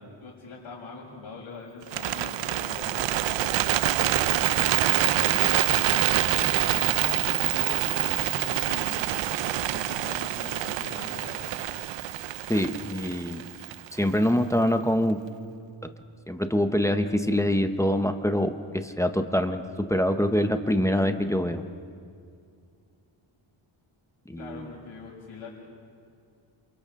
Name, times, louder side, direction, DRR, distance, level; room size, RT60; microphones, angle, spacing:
voice 1, 0.2-3.5 4.0-9.1 9.7-11.5 24.4-25.5, left 3 dB, 65° left, -10 dB, 5.9 m, -42 dB
Bird, 1.8-14.0, right 13 dB, 60° right, 0.5 m, -26 dB
voice 2, 12.5-13.4 13.9-15.2 16.3-21.6 24.3-24.7, equal, 5° left, 7 dB, 0.8 m, -25 dB
28.5 x 27.5 x 3.7 m, 2.3 s
wide cardioid pair, 155°, 50 cm